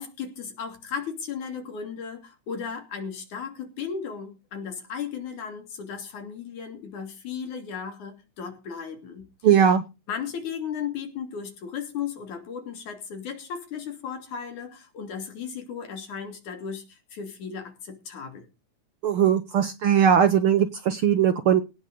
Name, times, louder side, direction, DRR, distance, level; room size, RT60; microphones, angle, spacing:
voice 1, 0.0-9.7 10.1-18.5, left 7 dB, 85° left, 5 dB, 4.4 m, -35 dB
voice 2, 9.4-9.8 19.0-21.6, right 8 dB, 65° right, 11 dB, 1.4 m, -19 dB
17.5 x 6.5 x 6.8 m, 0.29 s
omnidirectional pair, 3.4 m